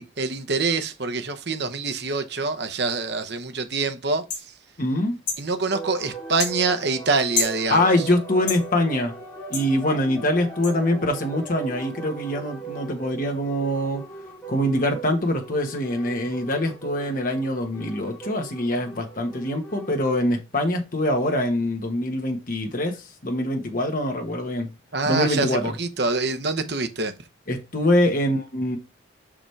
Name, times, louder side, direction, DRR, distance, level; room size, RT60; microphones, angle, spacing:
voice 1, 0.0-4.5 5.4-8.0 24.9-27.1, right 3 dB, 60° right, 0.9 m, -25 dB
sound 1, 4.3-4.5 5.3-5.4 6.4-6.6 7.3-7.6 8.5-8.6 9.5-9.7 10.6-10.7, left 5 dB, 65° left, 1.9 m, -27 dB
voice 2, 4.8-5.2 7.7-9.2 9.5-14.0 14.5-24.7 25.0-25.7 27.5-28.8, left 1 dB, 45° left, 1.4 m, -24 dB
sound 2, 5.7-20.1, right 4 dB, 10° left, 2.9 m, -39 dB
6.0 x 5.0 x 3.3 m
head